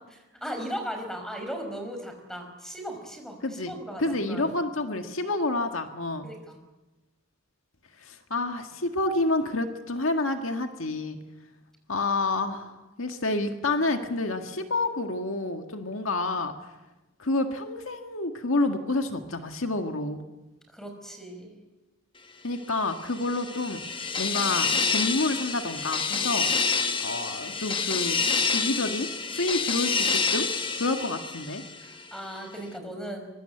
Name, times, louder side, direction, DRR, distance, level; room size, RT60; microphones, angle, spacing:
voice 1, 0.4-4.5 6.2-6.6 20.7-21.6 31.8-33.3, equal, ahead, 5 dB, 5.4 m, -37 dB
voice 2, 3.4-3.7 4.0-6.3 8.0-11.2 11.9-16.7 17.2-20.3 22.4-23.8 24.2-26.5 27.0-30.5 30.8-31.6, left 2 dB, 70° left, 6 dB, 1.9 m, -29 dB
sound 1, 22.9-32.0, left 5 dB, 25° left, 1.4 m, -28 dB
24.0 x 24.0 x 8.0 m, 1.1 s
head